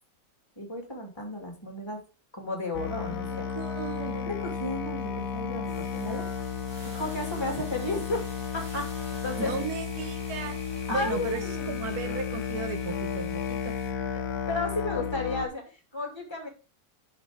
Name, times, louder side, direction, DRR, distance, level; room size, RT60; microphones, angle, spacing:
voice 1, 0.6-2.0 2.3-3.5 4.0-6.2 6.9-8.2 8.5-8.8 9.2-9.5 10.9-11.8 14.1-16.5, left 2 dB, 15° left, 2 dB, 2.3 m, -33 dB
Musical instrument, 2.7-15.5, left 7 dB, 70° left, 1.2 m, -33 dB
voice 2, 3.5-4.3 9.4-10.6 10.9-13.7, right 6 dB, 80° right, 7 dB, 1.4 m, -36 dB
sound 1, 5.2-13.9, equal, 15° right, 3.5 m, -50 dB
11.0 x 4.5 x 3.6 m, 0.32 s
omnidirectional pair, 1.6 m